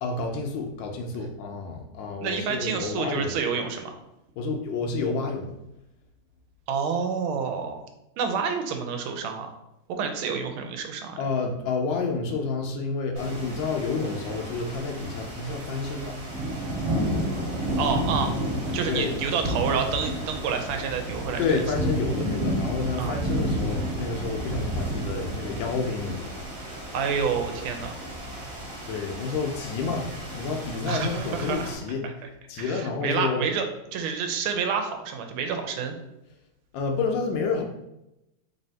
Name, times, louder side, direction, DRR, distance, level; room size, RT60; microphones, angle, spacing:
voice 1, 0.0-3.3 4.4-5.5 11.2-16.2 18.9-19.2 21.4-26.5 28.9-32.1 32.5-33.5 36.7-37.6, left 4 dB, 75° left, 2 dB, 1.2 m, -29 dB
voice 2, 2.2-4.0 6.7-7.8 8.2-9.6 9.9-11.2 17.7-18.3 18.7-21.4 23.0-23.1 26.9-28.0 30.9-31.7 32.0-32.1 32.6-35.9, right 6 dB, 90° right, 5 dB, 1.4 m, -28 dB
sound 1, 13.2-31.7, right 1 dB, 50° right, 1.4 m, -31 dB
3.4 x 2.7 x 4.2 m, 0.89 s
omnidirectional pair, 2.2 m